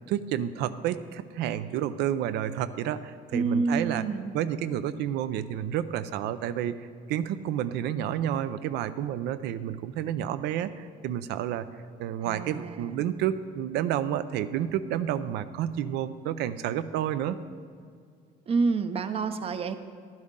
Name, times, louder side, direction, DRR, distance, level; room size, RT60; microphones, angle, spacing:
voice 1, 0.0-4.1 4.3-11.7 12.0-17.4, right 10 dB, 85° right, 14 dB, 0.5 m, -30 dB
voice 2, 3.3-4.3 12.2-13.0 18.5-19.8, right 4 dB, 35° right, 10 dB, 0.6 m, -28 dB
12.0 x 10.5 x 3.7 m, 2.2 s
cardioid pair, 110°, 17 cm